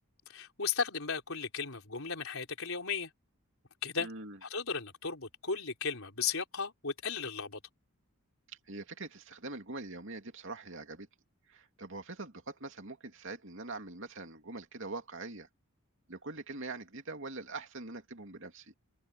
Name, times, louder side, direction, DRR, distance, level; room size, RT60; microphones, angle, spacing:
voice 1, 0.3-3.1 3.8-4.1 4.4-7.6, left 5 dB, 70° left, 4.1 m, -35 dB
voice 2, 4.0-4.4 8.5-11.1 11.5-15.5 16.1-18.7, right 3 dB, 60° right, 2.8 m, -43 dB
head